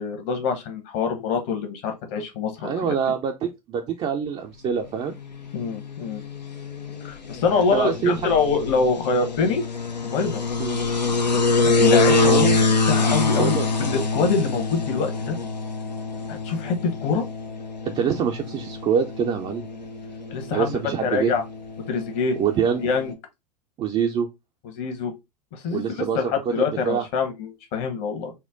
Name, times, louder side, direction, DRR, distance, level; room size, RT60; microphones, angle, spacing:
voice 1, 0.0-2.9 5.5-6.2 7.0-9.6 10.0-10.4 11.6-15.4 16.3-16.8 17.0-17.2 20.3-20.7 21.0-21.4 21.9-22.4 22.8-23.1 24.7-25.1 25.5-28.3, left 5 dB, 50° left, 1.2 m, -25 dB
voice 2, 2.6-5.1 7.5-8.2 10.6-10.8 12.2-12.5 13.4-13.9 17.8-19.7 20.5-21.3 22.4-22.8 23.8-24.3 25.7-26.3 26.6-27.1, right 7 dB, 25° right, 0.5 m, -25 dB
sound 1, 5.1-23.1, left 3 dB, 85° left, 0.7 m, -25 dB
4.4 x 2.1 x 3.5 m
figure-of-eight pair, 90°, 21 cm